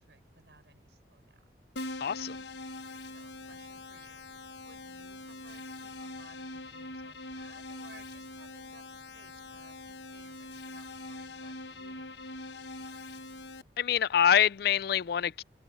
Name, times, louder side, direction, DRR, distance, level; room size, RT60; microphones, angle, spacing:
voice 1, 0.0-1.4 3.1-4.3 4.6-13.0, right 3 dB, 75° right, 6.5 m, -60 dB
Keyboard (musical), 1.8-13.6, left 2 dB, 75° left, 1.4 m, -43 dB
voice 2, 2.0-2.4 13.8-15.4, left 9 dB, 55° left, 0.4 m, -25 dB
head